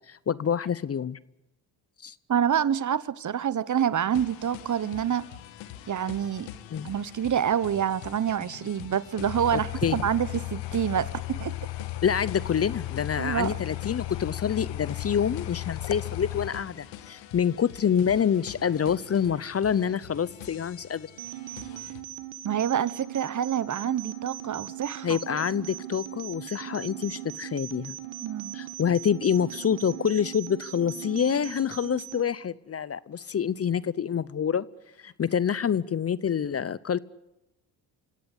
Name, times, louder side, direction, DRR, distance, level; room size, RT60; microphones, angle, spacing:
voice 1, 0.1-1.2 2.0-2.1 6.7-6.9 9.8-10.0 12.0-21.1 25.0-28.0 28.5-34.6 35.0-37.0, left 8 dB, 30° left, 0.7 m, -27 dB
voice 2, 2.3-5.3 5.9-6.5 6.8-11.5 13.2-13.6 22.4-25.2 28.2-28.6, right 9 dB, 40° right, 1.1 m, -27 dB
sound 1, 4.1-22.0, left 12 dB, 85° left, 1.8 m, -45 dB
sound 2, 9.2-16.5, left 18 dB, 65° left, 1.2 m, -35 dB
sound 3, 21.2-32.2, right 12 dB, 75° right, 2.0 m, -39 dB
25.5 x 17.0 x 8.2 m
supercardioid pair, 70°, 45 cm